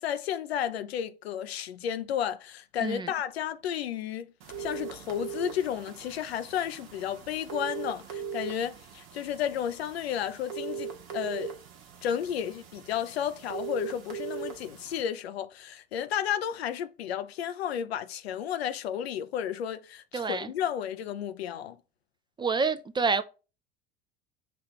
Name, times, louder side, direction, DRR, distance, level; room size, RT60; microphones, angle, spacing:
voice 1, 0.0-4.3 4.6-11.5 12.0-21.8, left 9 dB, 85° left, 0.5 m, -32 dB
voice 2, 2.8-3.1 20.1-20.5 22.4-23.2, right 4 dB, 15° right, 0.3 m, -28 dB
sound 1, 4.4-15.0, right 7 dB, 70° right, 1.0 m, -40 dB
5.8 x 2.4 x 2.8 m
hypercardioid pair, 65°, 31 cm